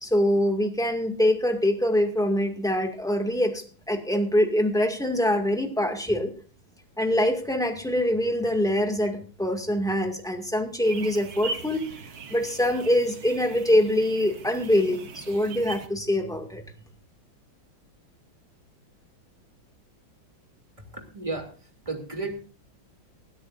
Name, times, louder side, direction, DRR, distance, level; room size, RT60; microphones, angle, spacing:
voice 1, 0.0-6.3 7.0-11.9 12.3-16.6, left 1 dB, ahead, 4 dB, 2.0 m, -24 dB
sound 1, 10.8-15.9, right 4 dB, 55° right, 1.6 m, -40 dB
voice 2, 20.8-22.3, right 3 dB, 15° right, 2 dB, 2.8 m, -34 dB
20.5 x 13.0 x 2.6 m, 0.39 s
omnidirectional pair, 2.2 m